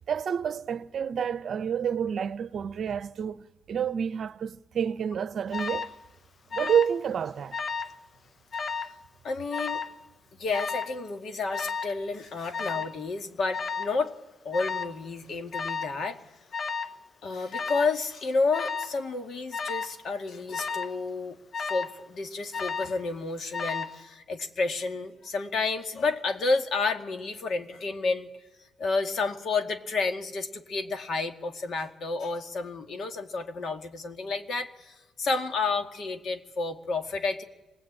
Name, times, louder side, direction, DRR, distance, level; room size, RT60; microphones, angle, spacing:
voice 1, 0.1-5.9 6.5-7.6, right 8 dB, 55° right, 0.9 m, -29 dB
Alarm, 5.5-6.0 6.5-7.0 7.3-8.0 8.5-8.9 9.5-10.0 10.5-11.0 11.5-12.0 12.5-13.0 13.5-14.0 14.5-15.0 15.5-16.0 16.5-17.0 17.5-18.0 18.5-19.0 19.5-20.0 20.5-21.0 21.5-22.0 22.5-23.0 23.5-24.0, left 5 dB, 40° left, 1.0 m, -33 dB
voice 2, 9.2-9.8 10.4-14.1 14.4-16.2 17.2-28.3 28.8-37.4, left 3 dB, 55° left, 2.1 m, -30 dB
26.0 x 20.0 x 8.9 m
cardioid pair, 90°, 0 cm